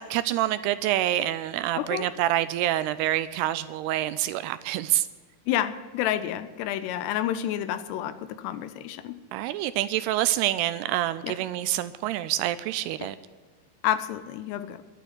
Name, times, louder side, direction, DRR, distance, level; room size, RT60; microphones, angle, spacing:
voice 1, 0.0-5.1 9.3-13.2, right 14 dB, 80° right, 14 dB, 2.4 m, -27 dB
voice 2, 1.8-2.1 5.5-9.1 11.2-11.4 13.0-13.1 13.8-14.8, left 11 dB, 80° left, 12 dB, 2.8 m, -29 dB
11.5 x 9.1 x 10.0 m, 1.5 s
omnidirectional pair, 4.9 m